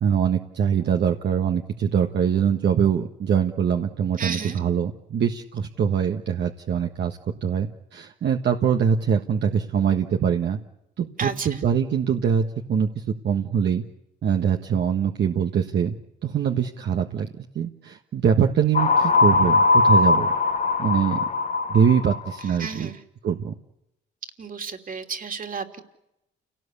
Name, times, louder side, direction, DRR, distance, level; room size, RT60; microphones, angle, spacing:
voice 1, 0.0-10.6 11.0-13.8 14.2-15.9 16.2-17.3 17.5-20.3 20.8-21.2 21.7-22.9 23.2-23.5, right 7 dB, 60° right, 3 dB, 1.6 m, -23 dB
voice 2, 4.2-4.6 11.2-11.5 22.6-23.0 24.4-25.8, right 5 dB, 45° right, 6 dB, 2.9 m, -32 dB
sound 1, 18.7-22.4, left 3 dB, 40° left, 1.1 m, -20 dB
29.0 x 18.5 x 8.4 m, 0.87 s
cardioid pair, 90°, 20 cm